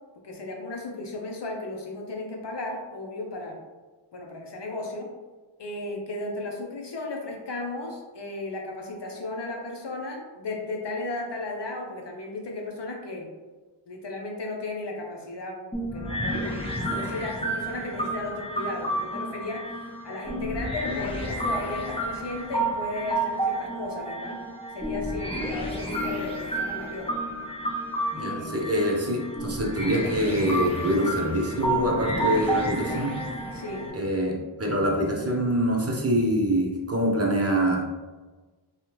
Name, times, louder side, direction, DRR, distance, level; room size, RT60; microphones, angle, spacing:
voice 1, 0.2-3.6 4.1-5.1 5.6-13.3 13.9-24.4 24.7-27.1 28.2-28.7 33.5-33.9, left 2 dB, 55° left, 1 dB, 0.8 m, -35 dB
sound 1, 15.7-33.9, right 1 dB, 10° left, 0.9 m, -30 dB
voice 2, 28.1-33.1 33.9-37.8, equal, 30° right, -1 dB, 0.8 m, -25 dB
3.3 x 2.4 x 2.9 m, 1.3 s
wide cardioid pair, 45°, 49 cm